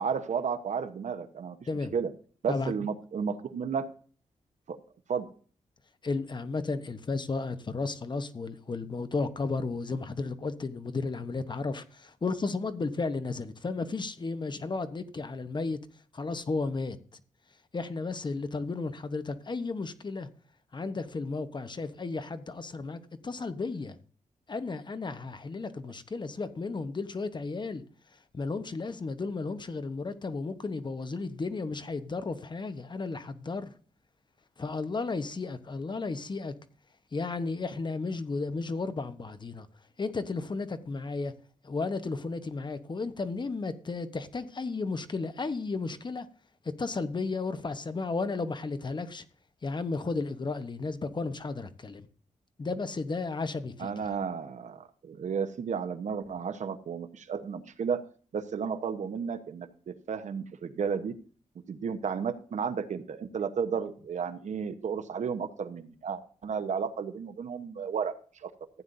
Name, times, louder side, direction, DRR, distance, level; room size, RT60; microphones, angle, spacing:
voice 1, 0.0-1.6 1.9-2.1 2.4-3.9 4.7-4.8 5.1-5.3 53.8-58.0 58.3-61.1 61.7-68.1 68.4-68.5, right 6 dB, 70° right, 1.0 m, -33 dB
voice 2, 6.0-15.8 16.1-17.2 17.7-20.3 20.7-24.0 24.5-27.8 28.3-33.7 34.6-36.5 37.1-39.7 40.0-41.3 41.6-46.3 46.8-49.2 49.6-52.1 52.6-53.9, left 3 dB, 35° left, 1.0 m, -33 dB
15.0 x 9.4 x 2.7 m
wide cardioid pair, 100°, 13 cm